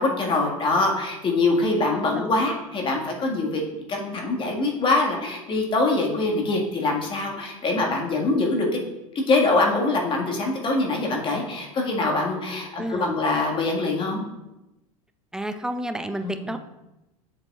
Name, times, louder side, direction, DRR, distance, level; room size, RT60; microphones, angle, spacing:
voice 1, 0.0-3.6 3.9-8.8 9.3-14.2 16.2-16.5, left 2 dB, 25° left, 0 dB, 1.7 m, -24 dB
voice 2, 1.9-2.4 12.8-13.2 15.3-16.6, right 1 dB, 5° right, 8 dB, 0.5 m, -31 dB
7.6 x 7.2 x 2.4 m, 0.96 s
figure-of-eight pair, 85°, 19 cm